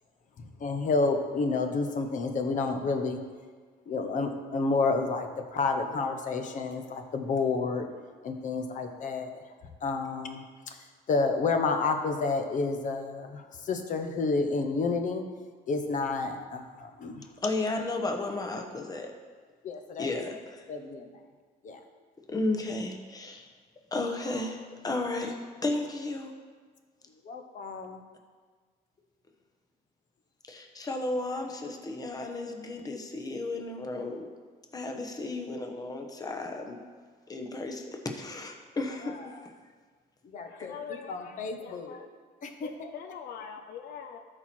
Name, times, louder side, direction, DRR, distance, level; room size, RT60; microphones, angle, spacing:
voice 1, 0.6-3.2 3.9-7.9 8.2-9.3 9.8-10.8 11.1-15.2 15.7-17.2 19.6-20.1 20.7-21.1 21.6-21.8 27.2-28.0 40.3-42.0 42.4-42.9, left 3 dB, 50° left, 6 dB, 1.0 m, -30 dB
voice 2, 17.4-19.1 20.0-20.7 22.3-23.5 23.9-25.4 25.6-26.3 30.5-34.3 34.7-36.8 37.3-39.5 40.6-40.7, left 2 dB, 20° left, 3 dB, 1.1 m, -33 dB
voice 3, 40.7-41.3 41.6-42.0 42.6-44.2, left 7 dB, 70° left, 6 dB, 0.6 m, -42 dB
13.0 x 4.4 x 4.5 m, 1.5 s
cardioid pair, 110°, 17 cm